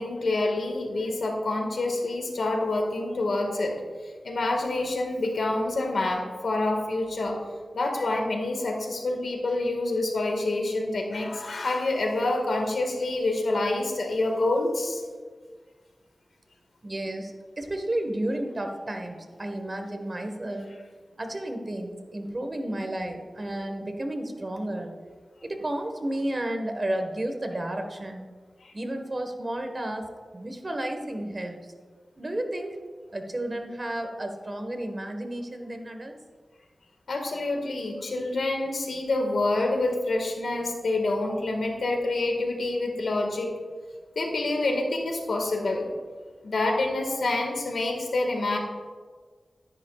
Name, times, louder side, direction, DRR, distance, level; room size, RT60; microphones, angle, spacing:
voice 1, 0.0-3.8 4.2-7.4 7.7-15.0 28.6-28.7 37.1-43.5 44.1-45.9 46.4-48.6, left 2 dB, 80° left, 2 dB, 1.7 m, -27 dB
voice 2, 16.8-20.7 21.2-24.9 25.4-28.3 28.7-31.7 32.2-32.8 33.1-36.1, right 1 dB, 35° right, 5 dB, 1.4 m, -32 dB
12.5 x 10.5 x 2.4 m, 1.5 s
wide cardioid pair, 65°, 0 cm